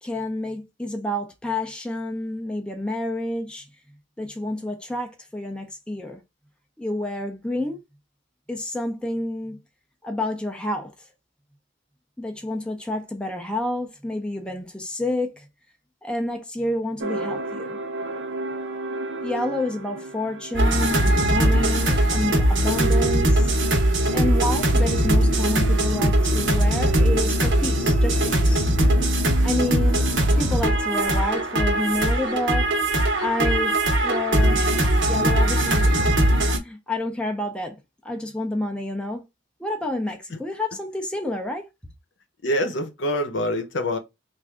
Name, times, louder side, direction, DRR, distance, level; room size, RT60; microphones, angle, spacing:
voice 1, 0.0-3.7 4.2-6.2 6.8-7.8 8.5-9.6 10.0-10.9 12.2-15.5 16.0-17.8 19.2-23.5 24.1-28.7 29.1-30.0 30.4-34.6 35.0-36.1 36.6-37.8 38.0-39.2 39.6-41.7, left 1 dB, 5° left, 0.5 m, -29 dB
sound 1, 17.0-32.3, right 3 dB, 80° right, 0.7 m, -33 dB
sound 2, 20.5-36.6, right 1 dB, 65° right, 1.0 m, -20 dB
voice 2, 42.4-44.0, equal, 65° left, 0.8 m, -25 dB
3.2 x 2.5 x 3.6 m
head